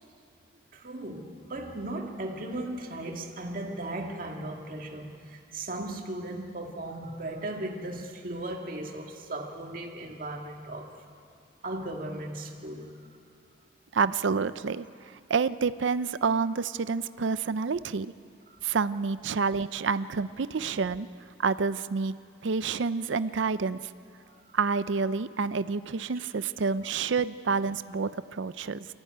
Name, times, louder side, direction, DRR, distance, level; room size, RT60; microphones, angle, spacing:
voice 1, 0.7-10.9 11.6-13.0 18.5-18.8 24.3-24.4 26.1-26.3, right 1 dB, 45° right, 1 dB, 2.0 m, -37 dB
voice 2, 13.9-14.8 15.3-18.1 18.6-21.1 21.4-22.1 22.4-23.8 24.5-28.9, right 5 dB, 80° right, 14 dB, 0.5 m, -28 dB
23.5 x 14.5 x 9.4 m, 2.3 s
head